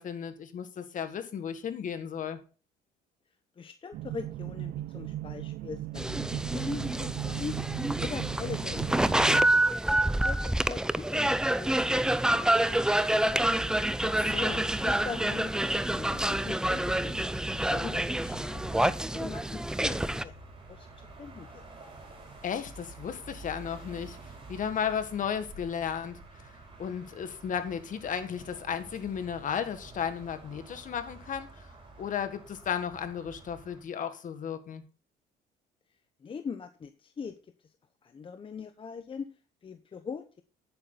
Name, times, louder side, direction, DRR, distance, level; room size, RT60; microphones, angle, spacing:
voice 1, 0.0-2.4 14.0-14.6 22.4-24.2 24.5-26.2 26.8-31.6 32.0-34.8, left 8 dB, 50° left, 1.8 m, -34 dB
voice 2, 3.6-7.6 8.0-13.7 14.6-17.2 17.5-21.6 36.2-37.7 38.0-39.3 39.6-40.4, left 5 dB, 30° left, 0.9 m, -42 dB
sound 1, 3.9-9.5, right 14 dB, 65° right, 0.4 m, -37 dB
sound 2, 6.0-20.2, right 1 dB, 5° right, 0.5 m, -27 dB
sound 3, 14.2-33.8, right 3 dB, 30° right, 5.1 m, -48 dB
9.9 x 8.8 x 4.0 m
cardioid pair, 110°, 17 cm